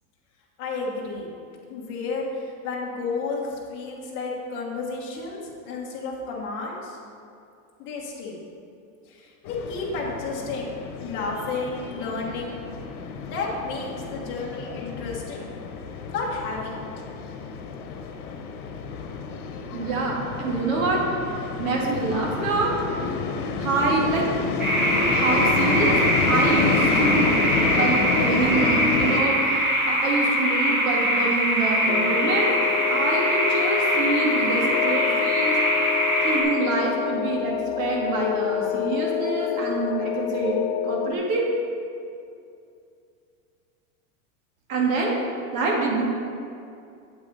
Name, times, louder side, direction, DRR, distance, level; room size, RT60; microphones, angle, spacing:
voice 1, 0.6-1.3 1.7-7.0 7.8-8.4 9.1-10.7 11.0-12.6 13.3-15.5 16.0-16.8, left 3 dB, 25° left, -4 dB, 1.5 m, -32 dB
sound 1, 9.5-29.2, left 5 dB, 85° left, 1.1 m, -29 dB
voice 2, 19.7-21.0 21.6-23.2 23.6-24.3 25.1-26.0 26.3-32.6 32.9-35.6 36.2-40.6 40.8-41.5 44.7-45.1 45.5-46.0, right 3 dB, 65° right, -2 dB, 2.3 m, -26 dB
sound 2, 24.6-36.4, equal, 20° right, 1.7 m, -23 dB
sound 3, 31.9-41.1, left 11 dB, 70° left, 0.5 m, -28 dB
8.6 x 8.2 x 4.2 m, 2.5 s
supercardioid pair, 175°, 44 cm